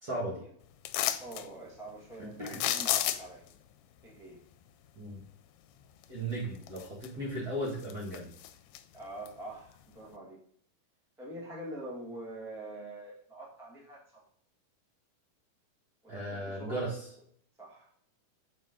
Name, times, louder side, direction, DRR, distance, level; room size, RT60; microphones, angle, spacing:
voice 1, 0.0-0.4 2.4-2.6 5.0-5.2 6.1-8.3 16.1-17.0, right 1 dB, 40° right, -5 dB, 1.5 m, -36 dB
sound 1, 0.8-1.5 2.5-3.5 6.0-6.1 6.6-7.3 7.7-8.8 9.3-9.4, left 12 dB, 80° left, 2.1 m, -31 dB
voice 2, 1.2-3.5 4.0-4.4 8.9-10.4 11.2-14.2 16.0-16.9 17.6-17.9, right 1 dB, ahead, -5 dB, 0.9 m, -45 dB
7.3 x 4.2 x 3.6 m, 0.63 s
omnidirectional pair, 3.8 m